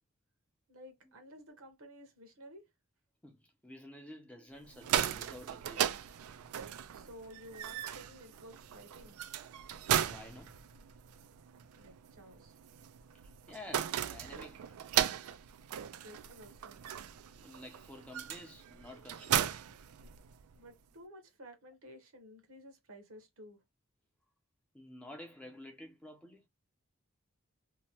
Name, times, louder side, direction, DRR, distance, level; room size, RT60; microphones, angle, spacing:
voice 1, 0.7-2.6 6.9-9.2 11.7-12.6 15.9-16.8 20.5-23.6, equal, 70° right, 0.9 m, -53 dB
voice 2, 3.2-6.0 9.9-10.6 13.5-14.8 17.4-19.6 24.7-26.4, left 1 dB, 5° left, 0.5 m, -51 dB
sound 1, 4.6-20.6, right 10 dB, 90° right, 0.4 m, -37 dB
2.8 x 2.1 x 2.9 m
head